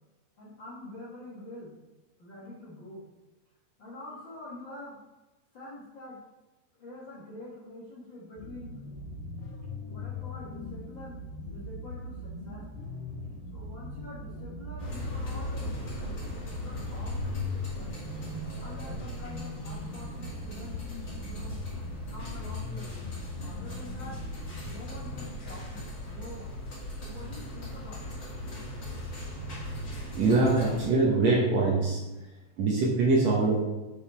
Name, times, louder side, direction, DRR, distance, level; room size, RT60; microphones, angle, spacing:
voice 1, 0.4-1.8 2.2-3.0 3.8-5.0 5.5-6.2 6.8-8.8 9.9-11.2 11.5-12.7 13.5-18.2 18.6-20.8 21.2-21.6 22.1-23.1 23.4-24.2 24.6-26.6 27.0-28.2 32.0-32.1, left 1 dB, 60° left, -7 dB, 1.2 m, -46 dB
sound 1, 8.4-25.3, left 3 dB, 85° left, 3.9 m, -40 dB
sound 2, 14.8-30.9, equal, 35° left, 2.5 m, -39 dB
voice 2, 30.1-32.0 32.6-33.6, right 3 dB, 70° right, -3 dB, 1.6 m, -23 dB
8.0 x 5.2 x 4.3 m, 1.1 s
omnidirectional pair, 4.6 m